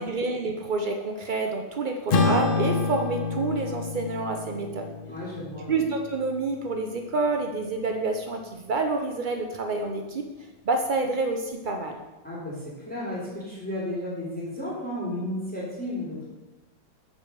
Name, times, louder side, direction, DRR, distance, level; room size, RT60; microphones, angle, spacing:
voice 1, 0.0-4.9 5.7-10.3 10.7-12.0, right 3 dB, 85° right, 4 dB, 0.4 m, -28 dB
Acoustic guitar / Strum, 2.1-6.8, left 4 dB, 60° left, 0.5 m, -28 dB
voice 2, 5.1-5.7 12.2-16.2, left 1 dB, 5° left, -8 dB, 2.9 m, -33 dB
7.2 x 4.9 x 6.6 m, 1.1 s
omnidirectional pair, 1.8 m